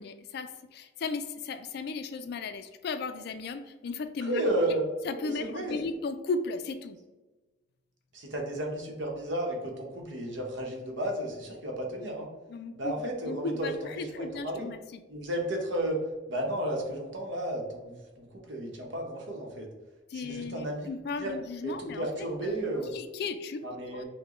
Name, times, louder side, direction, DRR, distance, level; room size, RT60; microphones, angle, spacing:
voice 1, 0.0-4.4 5.0-7.0 12.5-12.9 13.2-15.0 20.1-24.0, left 4 dB, 55° left, 10 dB, 0.3 m, -36 dB
voice 2, 4.3-4.9 5.2-5.8 8.1-12.3 12.7-13.7 14.2-14.7 15.1-16.0 16.3-19.7 20.1-20.9 21.2-21.3 21.6-22.9 23.6-24.0, right 1 dB, 70° right, 1 dB, 0.9 m, -33 dB
5.9 x 2.2 x 3.0 m, 1.2 s
head